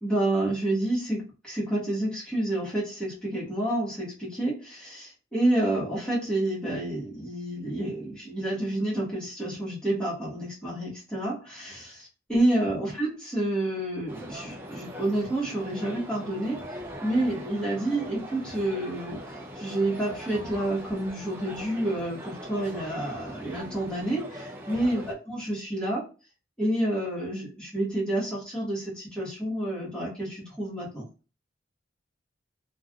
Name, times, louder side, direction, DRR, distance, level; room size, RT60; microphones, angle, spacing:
voice 1, 0.0-16.6 17.0-19.2 19.5-26.1 26.6-31.1, right 1 dB, 5° left, -7 dB, 1.1 m, -29 dB
sound 1, 14.1-25.1, equal, 10° right, 0.5 m, -41 dB
3.2 x 2.4 x 2.3 m, 0.34 s
head